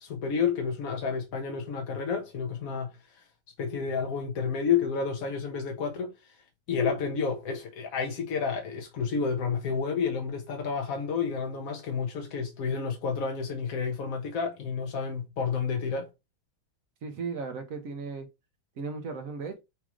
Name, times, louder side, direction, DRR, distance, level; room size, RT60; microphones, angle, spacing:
voice 1, 0.0-3.3 3.6-6.3 6.7-16.1, left 6 dB, 60° left, 0.9 m, -30 dB
voice 2, 17.0-18.3 18.8-19.6, right 4 dB, 65° right, 0.8 m, -36 dB
5.9 x 2.4 x 3.0 m
omnidirectional pair, 2.2 m